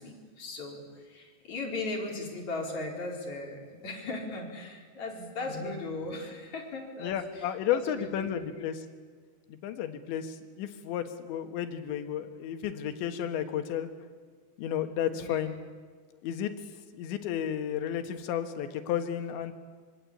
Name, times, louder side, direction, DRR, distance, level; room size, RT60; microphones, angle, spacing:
voice 1, 0.0-8.7 15.1-15.4, left 2 dB, 40° left, 0 dB, 5.1 m, -38 dB
voice 2, 7.0-8.9 9.5-13.9 14.6-15.6 16.2-16.5 16.9-19.5, left 9 dB, 85° left, 8 dB, 3.8 m, -32 dB
25.5 x 24.5 x 8.6 m, 1.6 s
omnidirectional pair, 5.1 m